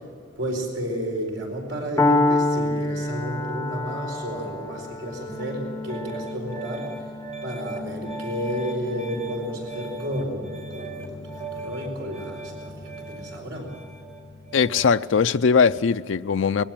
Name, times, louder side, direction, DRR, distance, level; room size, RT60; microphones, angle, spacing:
voice 1, 0.4-6.9 7.4-13.7, equal, 75° right, 4.5 m, -32 dB
Piano, 2.0-9.9, left 2 dB, 15° left, 0.9 m, -27 dB
Piano 2, 5.3-15.0, equal, 40° right, 4.6 m, -37 dB
voice 2, 14.5-16.6, left 5 dB, 85° left, 0.5 m, -20 dB
21.5 x 16.0 x 9.0 m
head